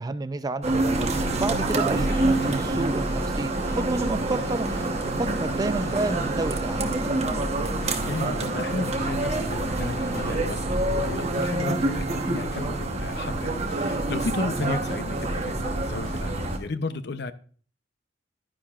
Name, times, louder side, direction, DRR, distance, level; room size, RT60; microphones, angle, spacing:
voice 1, 0.0-4.7 5.1-6.9 14.6-14.8, right 2 dB, 20° right, 0.4 m, -30 dB
sound 1, 0.6-16.6, right 2 dB, 35° right, 1.1 m, -27 dB
sound 2, 0.8-10.4, equal, 15° left, 3.6 m, -39 dB
Drum kit / Drum, 7.2-10.8 11.0-16.6, left 1 dB, 85° left, 3.9 m, -49 dB
voice 2, 7.8-17.3, left 3 dB, 65° left, 0.7 m, -34 dB
12.0 x 10.0 x 2.4 m
head